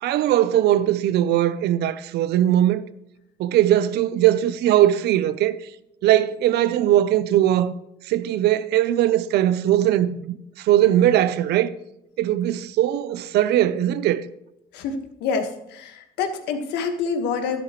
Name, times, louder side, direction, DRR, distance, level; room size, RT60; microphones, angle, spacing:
voice 1, 0.0-2.8 3.4-5.6 6.0-7.7 8.0-11.7 12.2-14.2, right 12 dB, 75° right, 0.6 m, -20 dB
voice 2, 14.7-17.6, left 5 dB, 80° left, 1.5 m, -27 dB
11.5 x 10.5 x 3.1 m
cardioid pair, 110°, 17 cm